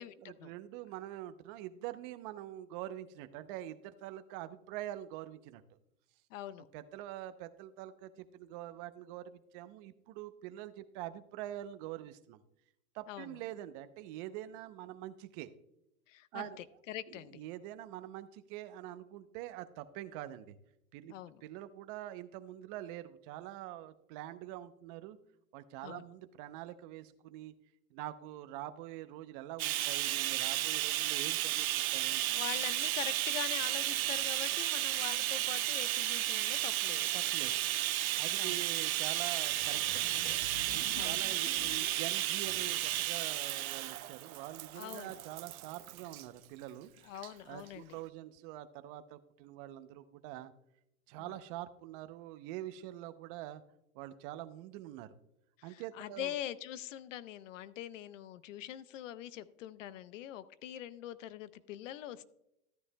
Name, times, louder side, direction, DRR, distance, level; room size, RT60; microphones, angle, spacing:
voice 1, 0.2-5.6 6.7-12.4 12.9-15.5 16.3-16.6 17.1-20.6 20.9-21.1 21.4-25.2 25.5-27.5 27.9-32.2 37.1-37.5 38.2-40.2 40.7-46.9 47.5-50.5 51.1-53.6 53.9-55.1 55.6-56.3, right 13 dB, 40° right, 12 dB, 0.7 m, -45 dB
voice 2, 6.3-6.7 13.1-13.4 16.1-17.4 21.1-21.4 25.8-26.0 32.2-37.3 38.4-38.6 40.9-41.2 44.7-45.2 47.0-48.0 51.2-51.4 55.6-62.2, left 12 dB, 60° left, 16 dB, 0.7 m, -44 dB
Bathtub (filling or washing), 29.6-46.2 47.2-47.3 47.7-47.8, right 15 dB, 75° right, 0.7 m, -33 dB
sound 1, 39.1-39.2 39.4-43.2, left 7 dB, 90° left, 0.9 m, -50 dB
13.5 x 9.4 x 2.2 m, 0.80 s
hypercardioid pair, 135°, 42 cm